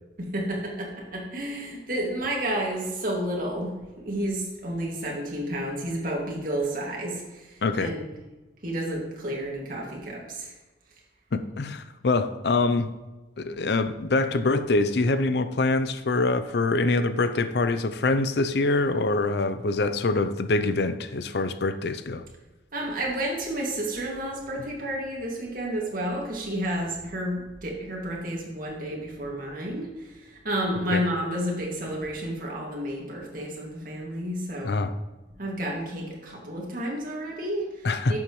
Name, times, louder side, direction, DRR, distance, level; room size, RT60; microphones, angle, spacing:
voice 1, 0.2-3.7 4.0-7.2 7.8-8.1 8.6-10.5 22.7-29.9 30.4-34.8 35.4-37.7 38.1-38.2, right 1 dB, 50° right, -2 dB, 2.2 m, -31 dB
voice 2, 7.6-8.0 11.3-12.9 13.4-22.2 30.9-31.0 34.6-34.9 37.8-38.2, left 3 dB, 65° left, 11 dB, 0.6 m, -25 dB
11.0 x 7.2 x 3.1 m, 1.2 s
head